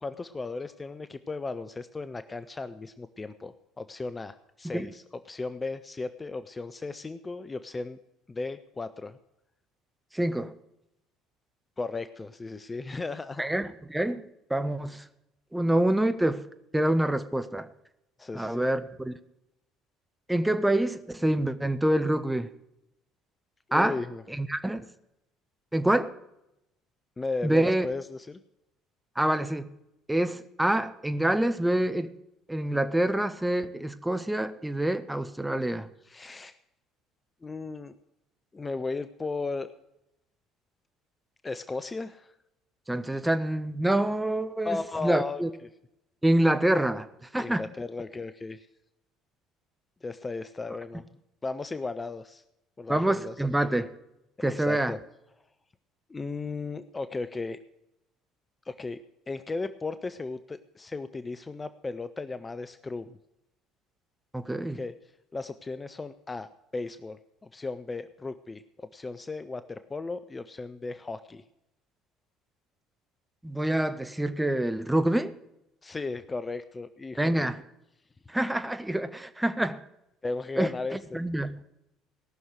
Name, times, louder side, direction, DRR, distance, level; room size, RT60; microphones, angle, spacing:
voice 1, 0.0-8.0 8.3-9.2 11.8-13.4 18.2-18.6 23.7-24.2 27.2-28.4 36.0-36.6 37.4-37.9 38.5-39.7 41.4-42.3 44.6-45.4 47.4-48.7 50.0-51.1 51.4-52.4 52.8-53.3 54.4-55.0 56.1-57.6 58.7-59.0 59.3-63.2 64.7-64.9 65.3-66.5 66.7-68.6 68.9-71.4 75.8-77.5 80.2-81.2, left 3 dB, 20° left, 12 dB, 0.6 m, -35 dB
voice 2, 10.1-10.5 13.4-15.0 15.5-16.4 16.7-17.7 18.3-19.1 20.3-22.5 23.7-24.0 24.3-24.8 25.7-26.1 27.4-27.9 29.2-29.7 30.1-32.1 32.5-35.9 42.9-45.5 46.2-47.1 47.3-47.6 52.9-53.9 54.4-54.9 64.3-64.8 73.4-75.3 77.2-77.6 78.3-79.8 80.6-80.7 81.1-81.5, right 1 dB, 5° right, 9 dB, 0.9 m, -26 dB
18.0 x 6.3 x 6.4 m, 0.85 s
figure-of-eight pair, 55°, 0 cm